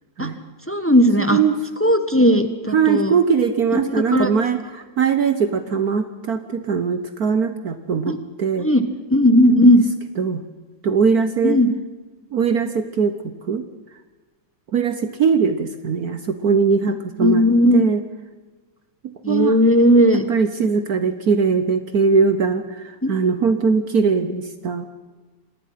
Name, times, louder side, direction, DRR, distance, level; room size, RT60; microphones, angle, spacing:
voice 1, 0.7-1.4 1.8-3.2 3.9-4.3 8.1-8.2 8.6-8.8 9.1-9.8 11.4-11.7 17.2-17.8 19.2-20.2 23.0-23.1, equal, 10° left, 10 dB, 0.9 m, -16 dB
voice 2, 2.7-4.6 5.0-8.7 10.2-10.4 10.8-11.6 12.3-13.1 13.5-13.6 14.7-17.4 17.7-18.0 19.3-19.6 20.1-22.6 23.1-24.9, right 5 dB, 55° right, 10 dB, 1.4 m, -20 dB
26.5 x 19.0 x 5.7 m, 1.3 s
omnidirectional pair, 2.1 m